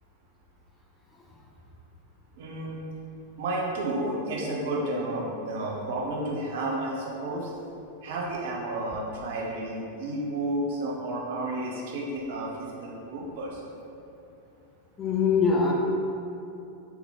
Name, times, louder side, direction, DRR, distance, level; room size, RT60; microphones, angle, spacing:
voice 1, 2.4-2.8 3.4-7.5 8.0-13.6, right 1 dB, 55° right, -3 dB, 0.7 m, -31 dB
voice 2, 15.0-15.7, left 5 dB, 15° left, -2 dB, 0.5 m, -22 dB
3.6 x 3.1 x 3.6 m, 2.7 s
figure-of-eight pair, 90°, 0 cm